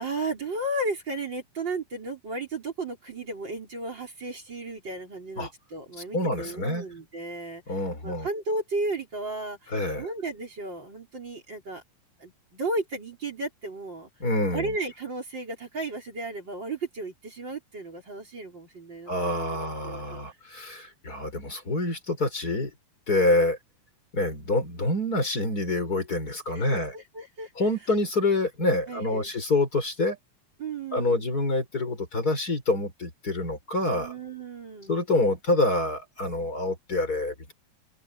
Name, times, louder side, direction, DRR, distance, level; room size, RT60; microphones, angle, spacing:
voice 1, 0.0-11.8 12.2-14.1 14.5-20.2 26.5-27.5 28.9-29.3 30.6-31.3 33.9-34.9, right 2 dB, 30° right, 4.6 m, -34 dB
voice 2, 6.1-6.8 7.7-8.3 9.7-10.1 14.2-14.7 19.1-22.7 23.1-23.6 24.1-26.9 27.6-30.2 30.9-34.1 34.9-37.5, left 2 dB, 25° left, 5.3 m, -26 dB
omnidirectional pair, 4.2 m